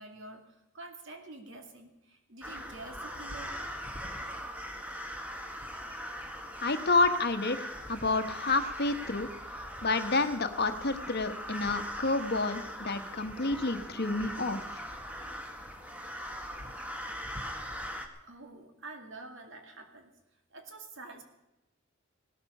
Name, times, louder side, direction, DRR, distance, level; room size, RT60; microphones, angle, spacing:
voice 1, 0.0-3.6 18.3-20.1 20.5-21.2, right 2 dB, 65° right, 4 dB, 2.2 m, -47 dB
sound 1, 2.4-18.1, equal, 5° right, 1.7 m, -40 dB
voice 2, 6.6-9.3 9.8-14.8, left 3 dB, 55° left, 9 dB, 1.2 m, -29 dB
18.0 x 13.5 x 5.5 m, 0.96 s
head